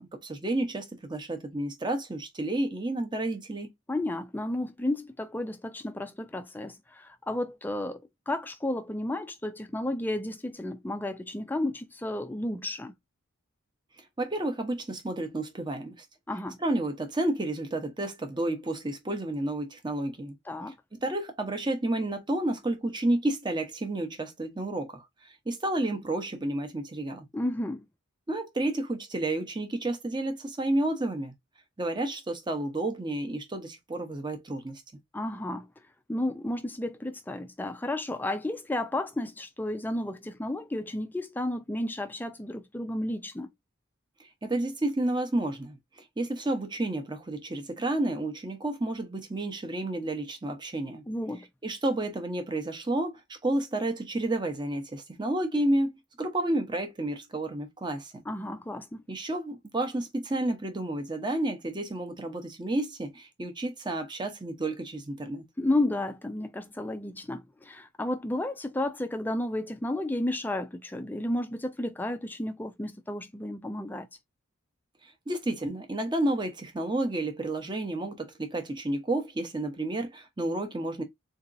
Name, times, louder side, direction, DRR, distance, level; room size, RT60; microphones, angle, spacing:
voice 1, 0.0-3.7 14.0-16.1 16.6-20.3 20.9-27.3 28.3-31.3 31.8-34.8 44.2-51.0 51.6-55.9 56.2-58.2 59.1-65.5 75.0-81.0, right 1 dB, 20° right, 0.7 m, -31 dB
voice 2, 3.9-12.9 16.3-16.6 20.5-20.8 27.3-27.9 35.1-35.7 36.1-43.5 51.1-51.5 58.3-59.0 65.6-74.1, left 1 dB, 10° left, 0.3 m, -32 dB
3.8 x 2.8 x 2.5 m
head